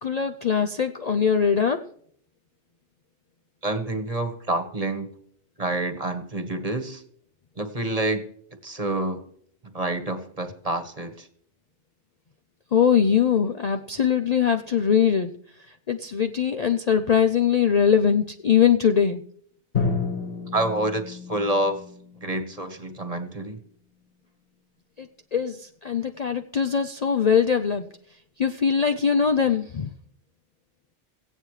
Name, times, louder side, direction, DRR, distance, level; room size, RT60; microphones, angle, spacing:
voice 1, 0.0-1.9 12.7-15.3 15.9-19.2 25.0-27.9 28.4-29.9, left 7 dB, 45° left, 6 dB, 0.6 m, -22 dB
voice 2, 3.6-5.1 5.6-7.0 7.6-8.3 8.6-9.2 9.6-11.3 20.5-21.8 22.2-23.6, right 2 dB, 35° right, 8 dB, 1.4 m, -28 dB
Drum, 19.7-23.5, left 5 dB, 60° left, 7.3 m, -31 dB
17.5 x 16.0 x 3.2 m, 0.63 s
omnidirectional pair, 1.2 m